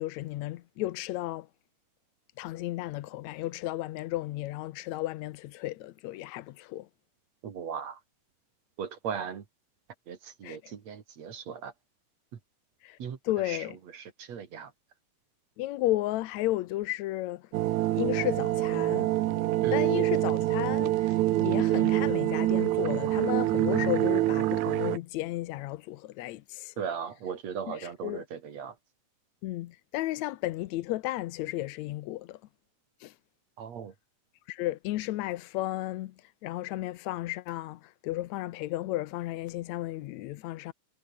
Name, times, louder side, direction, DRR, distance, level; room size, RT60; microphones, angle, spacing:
voice 1, 0.0-1.5 2.4-6.9 10.4-10.7 12.8-13.0 13.2-13.7 15.6-17.5 18.0-19.1 19.7-26.7 27.7-28.2 29.4-32.4 33.0-33.1 34.5-40.7, left 16 dB, 75° left, 1.8 m, -33 dB
voice 2, 7.4-8.0 8.8-9.4 10.1-11.7 12.3-12.4 13.0-13.2 13.4-14.7 19.6-19.9 26.8-28.8 33.6-33.9, right 7 dB, 55° right, 3.2 m, -38 dB
sound 1, 17.5-25.0, right 16 dB, 70° right, 2.0 m, -26 dB
omnidirectional pair, 3.9 m